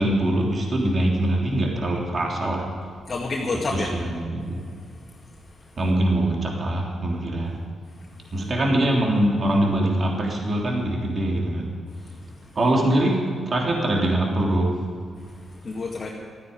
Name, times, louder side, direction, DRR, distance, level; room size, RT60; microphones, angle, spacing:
voice 1, 0.0-2.6 3.7-4.6 5.8-7.5 8.3-11.7 12.5-13.2 13.5-14.7, right 1 dB, 45° right, -1 dB, 3.2 m, -23 dB
voice 2, 3.1-3.9 5.5-5.6 8.2-8.3 12.4-12.5 15.4-16.1, left 3 dB, 40° left, -2 dB, 2.1 m, -29 dB
14.0 x 9.6 x 9.6 m, 2.2 s
cardioid pair, 75°, 0 cm